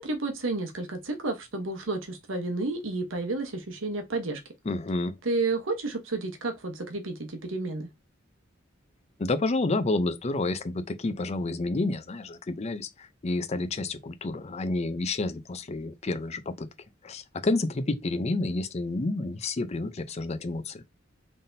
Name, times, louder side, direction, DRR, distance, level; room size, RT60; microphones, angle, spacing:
voice 1, 0.0-4.4 5.2-7.9, right 3 dB, 80° right, 1.0 m, -31 dB
voice 2, 4.7-5.2 9.2-16.7 17.0-20.8, left 2 dB, 35° left, 0.5 m, -29 dB
4.0 x 3.5 x 2.6 m
head